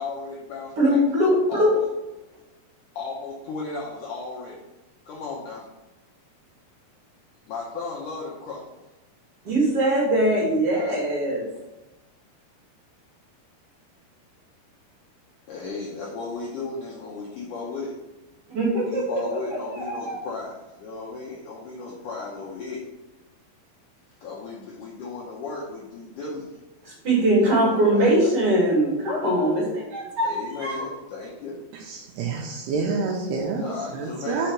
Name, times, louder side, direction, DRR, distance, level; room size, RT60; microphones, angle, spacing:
voice 1, 0.0-1.0 1.5-1.8 3.0-4.6 5.1-5.7 7.5-8.6 15.5-17.9 18.9-22.8 24.2-26.5 27.4-28.3 30.2-31.6 33.6-34.5, left 3 dB, 90° left, -4 dB, 1.8 m, -35 dB
voice 2, 0.8-1.7 9.4-11.4 18.5-19.2 19.5-20.2 26.9-30.8, right 1 dB, 50° right, -5 dB, 1.9 m, -22 dB
voice 3, 31.9-34.5, right 4 dB, 80° right, -1 dB, 2.7 m, -28 dB
5.6 x 5.1 x 4.5 m, 1.0 s
omnidirectional pair, 4.9 m